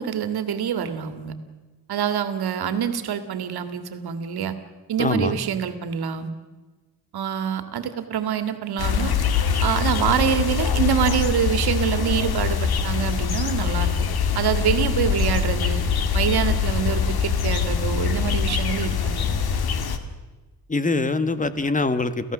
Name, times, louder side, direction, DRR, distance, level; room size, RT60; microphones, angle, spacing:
voice 1, 0.0-1.3 1.9-4.6 4.9-6.3 7.1-9.1 9.6-13.9 14.4-15.8 16.1-19.3, right 8 dB, 75° right, 10 dB, 2.1 m, -25 dB
voice 2, 5.0-5.4 20.7-22.3, left 3 dB, 20° left, 12 dB, 1.3 m, -23 dB
sound 1, 8.8-20.0, left 6 dB, 75° left, 2.0 m, -23 dB
30.0 x 15.5 x 7.2 m, 1.2 s
cardioid pair, 115°, 38 cm